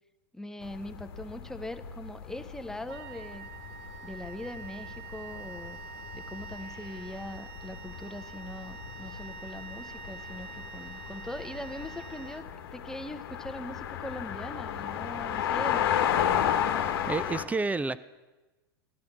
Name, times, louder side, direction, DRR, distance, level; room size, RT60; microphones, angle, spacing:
voice 1, 0.3-3.5 4.0-5.8 6.1-12.5 12.7-16.3, left 1 dB, 5° left, 9 dB, 0.8 m, -41 dB
sound 1, 0.6-17.4, left 9 dB, 70° left, 1.1 m, -34 dB
Wind instrument woodwind instrument, 2.9-13.0, right 6 dB, 55° right, 1.2 m, -46 dB
voice 2, 16.8-18.0, right 3 dB, 10° right, 16 dB, 0.4 m, -30 dB
14.0 x 12.5 x 5.9 m, 1.1 s
hypercardioid pair, 95°, 13 cm